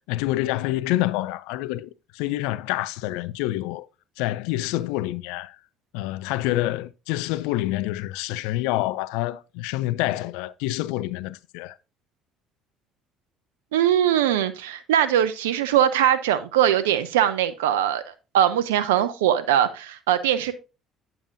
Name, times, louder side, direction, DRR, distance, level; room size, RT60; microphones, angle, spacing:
voice 1, 0.1-3.9 4.2-5.6 5.9-11.8, left 16 dB, 75° left, 0.4 m, -27 dB
voice 2, 13.7-20.5, right 10 dB, 85° right, 0.5 m, -21 dB
8.7 x 7.0 x 2.6 m
hypercardioid pair, 60°, 0 cm